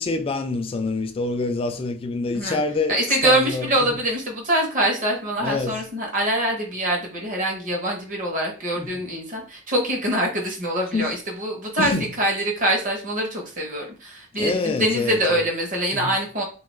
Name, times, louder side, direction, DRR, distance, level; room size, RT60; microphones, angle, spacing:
voice 1, 0.0-4.0 5.4-5.8 8.8-9.0 10.9-11.1 11.8-12.1 14.4-15.5 15.9-16.2, left 3 dB, 25° left, 0.3 m, -26 dB
voice 2, 2.9-16.4, right 1 dB, 40° right, 0.8 m, -24 dB
2.3 x 2.3 x 3.1 m
head